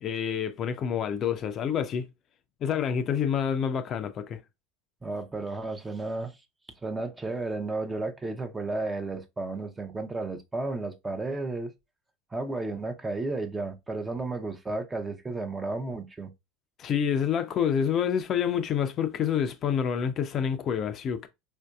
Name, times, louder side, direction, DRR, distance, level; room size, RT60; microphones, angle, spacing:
voice 1, 0.0-2.1 2.6-4.4 16.8-21.3, left 8 dB, 45° left, 0.5 m, -28 dB
voice 2, 5.0-6.4 6.8-11.7 12.3-16.3, right 3 dB, 15° right, 0.7 m, -33 dB
4.3 x 2.7 x 2.3 m
hypercardioid pair, 85°, 0 cm